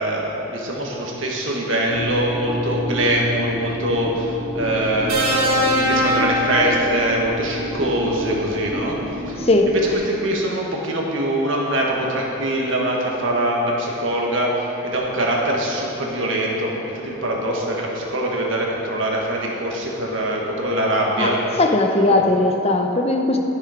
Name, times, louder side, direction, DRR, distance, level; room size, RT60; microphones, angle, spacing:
voice 1, 0.0-21.6 22.1-22.2, right 1 dB, 65° right, -2 dB, 1.6 m, -23 dB
sound 1, 1.9-9.9, equal, 10° right, 0.9 m, -30 dB
sound 2, 5.1-7.4 8.7-8.9, equal, 85° right, 2.2 m, -22 dB
voice 2, 21.6-23.4, left 2 dB, 30° left, 3 dB, 0.7 m, -18 dB
11.0 x 6.7 x 5.1 m, 3.0 s
head